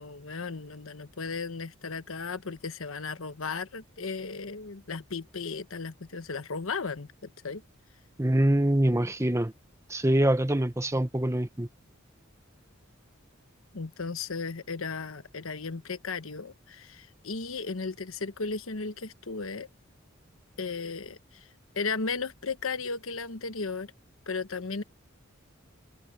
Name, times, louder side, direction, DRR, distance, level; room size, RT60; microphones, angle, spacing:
voice 1, 0.0-7.6 13.7-19.7 20.6-21.5 21.7-23.9 24.3-24.8, left 4 dB, 90° left, 1.2 m, -35 dB
voice 2, 8.2-9.5 9.9-11.7, right 1 dB, 15° right, 1.0 m, -24 dB
head